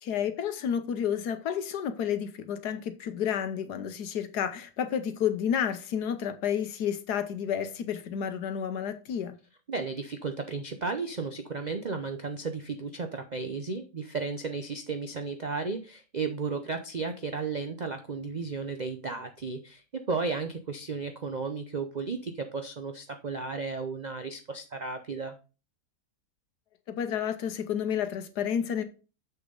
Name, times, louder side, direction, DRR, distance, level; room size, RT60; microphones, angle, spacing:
voice 1, 0.0-9.4 26.9-28.8, left 8 dB, 75° left, 1.4 m, -30 dB
voice 2, 9.7-25.3, right 4 dB, 80° right, 0.4 m, -34 dB
7.4 x 6.3 x 3.8 m
omnidirectional pair, 1.8 m